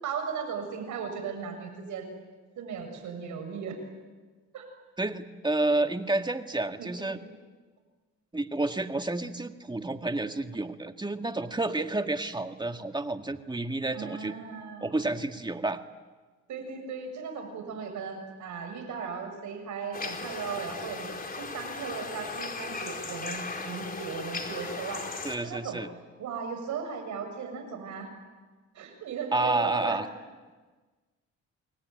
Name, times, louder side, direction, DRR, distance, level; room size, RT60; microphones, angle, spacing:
voice 1, 0.0-2.1 2.6-3.8 4.5-4.7 6.8-6.9 7.2-7.4 13.9-15.0 16.5-25.1 25.4-25.8 26.2-28.1 28.7-30.0, right 6 dB, 75° right, 5 dB, 7.3 m, -37 dB
voice 2, 5.0-7.2 8.3-14.3 14.8-15.8 25.2-25.9 29.3-30.1, right 2 dB, 15° right, 7 dB, 1.9 m, -30 dB
sound 1, 19.9-25.4, left 3 dB, 30° left, 4.3 m, -37 dB
29.5 x 21.0 x 9.4 m, 1.3 s
cardioid pair, 90°, 30 cm